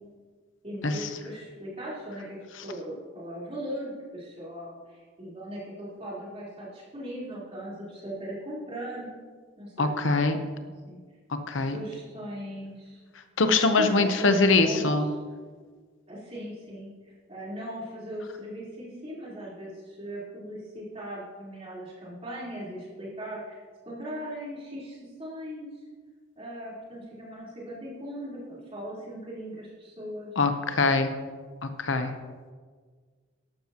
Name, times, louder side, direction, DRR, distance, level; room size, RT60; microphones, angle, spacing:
voice 1, 0.6-2.4 2.6-9.2 9.6-10.3 10.6-11.0 11.6-13.0 13.8-14.9 16.1-23.6 23.9-25.7 26.4-30.3, equal, 30° right, -7 dB, 3.9 m, -39 dB
voice 2, 9.8-10.4 11.5-11.8 13.4-15.1 30.4-31.1 31.6-32.1, left 3 dB, 75° left, 7 dB, 0.9 m, -23 dB
13.0 x 11.5 x 3.0 m, 1.5 s
head